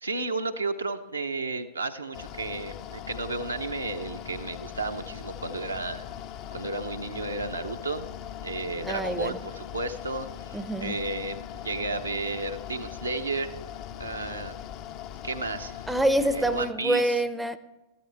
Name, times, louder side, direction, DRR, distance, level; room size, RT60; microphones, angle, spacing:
voice 1, 0.0-6.0 6.5-8.1 8.4-13.5 14.0-14.6 15.2-15.8 16.2-17.2, right 3 dB, 80° right, 5 dB, 0.8 m, -33 dB
Mechanical fan, 2.1-16.7, left 10 dB, 40° left, 0.6 m, -40 dB
voice 2, 8.8-9.3 10.5-11.0 15.9-17.6, right 1 dB, 5° right, 12 dB, 0.6 m, -26 dB
14.5 x 11.5 x 3.4 m, 1.1 s
figure-of-eight pair, 90°, 0 cm